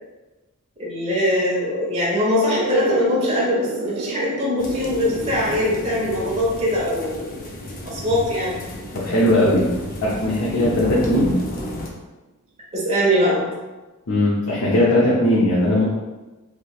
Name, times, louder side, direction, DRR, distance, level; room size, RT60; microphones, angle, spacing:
voice 1, 0.8-7.4 7.8-8.5 12.7-13.4, left 1 dB, 30° right, -6 dB, 0.9 m, -22 dB
sound 1, 2.5-9.6, right 3 dB, 85° right, 0.3 m, -32 dB
sound 2, 4.6-11.9, left 1 dB, 40° left, 0.5 m, -33 dB
voice 2, 8.9-9.7 10.0-11.3 14.1-15.9, left 1 dB, 90° left, -7 dB, 0.7 m, -18 dB
3.2 x 2.9 x 2.3 m, 1.1 s
head